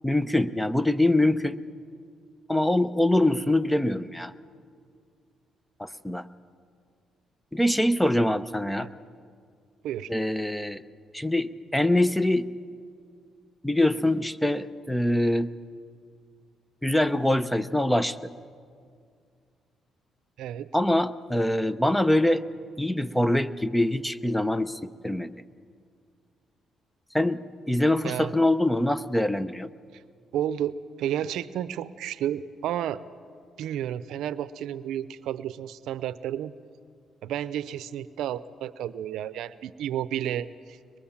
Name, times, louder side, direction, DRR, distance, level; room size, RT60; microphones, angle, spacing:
voice 1, 0.0-1.6 2.5-4.3 5.8-6.2 7.5-8.9 10.1-10.8 11.1-12.5 13.6-15.5 16.8-18.2 20.7-22.4 22.8-25.3 27.1-29.7, left 1 dB, 5° left, 13 dB, 0.8 m, -24 dB
voice 2, 20.4-20.7 28.0-28.4 29.9-30.0 30.3-33.0 33.6-36.5 37.2-41.0, right 11 dB, 85° right, 15 dB, 0.6 m, -32 dB
23.0 x 22.0 x 7.2 m, 2.2 s
cardioid pair, 90°, 0 cm